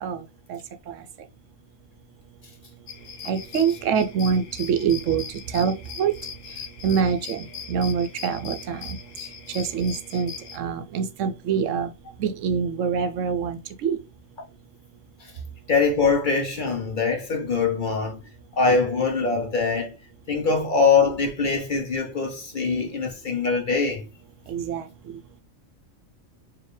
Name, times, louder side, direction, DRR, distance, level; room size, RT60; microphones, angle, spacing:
sound 1, 2.9-10.6, left 7 dB, 80° left, 1.1 m, -40 dB
voice 1, 3.2-6.1 6.8-9.0 9.5-11.9 12.2-14.0 24.5-24.9, right 6 dB, 75° right, 0.9 m, -25 dB
voice 2, 15.7-18.2 18.6-19.9 20.3-24.1, left 4 dB, 45° left, 0.8 m, -23 dB
4.8 x 2.7 x 3.2 m
omnidirectional pair, 1.3 m